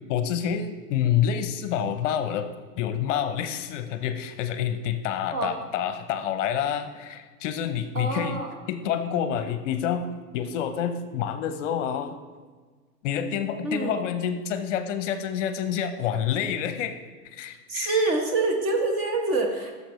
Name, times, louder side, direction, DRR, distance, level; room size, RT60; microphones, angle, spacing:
voice 1, 0.1-2.5 2.8-8.4 8.7-10.1 10.3-12.2 13.0-17.0 17.2-18.1, left 9 dB, 50° left, 9 dB, 0.7 m, -28 dB
voice 2, 7.9-8.5 13.6-13.9 17.7-19.8, right 3 dB, 30° right, 2 dB, 1.2 m, -26 dB
11.5 x 6.8 x 3.1 m, 1.5 s
hypercardioid pair, 125°, 46 cm